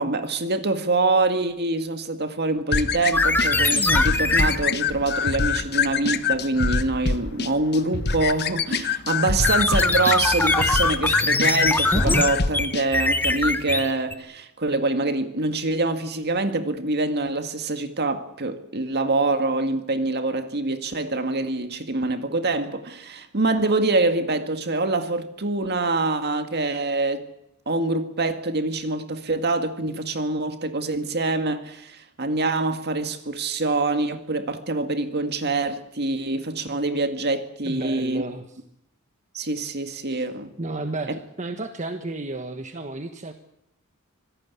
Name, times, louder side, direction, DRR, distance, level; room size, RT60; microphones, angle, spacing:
voice 1, 0.0-27.2 27.7-38.2 39.3-40.5 41.1-41.2, right 2 dB, 50° right, 2.1 m, -25 dB
sound 1, 2.7-12.9, left 5 dB, 50° left, 1.2 m, -25 dB
sound 2, 3.1-4.6 9.4-14.1, left 2 dB, 10° left, 1.1 m, -22 dB
voice 2, 37.6-38.6 40.1-40.2 40.6-41.1 41.4-43.3, right 2 dB, 35° right, 1.4 m, -32 dB
26.0 x 17.5 x 8.3 m
head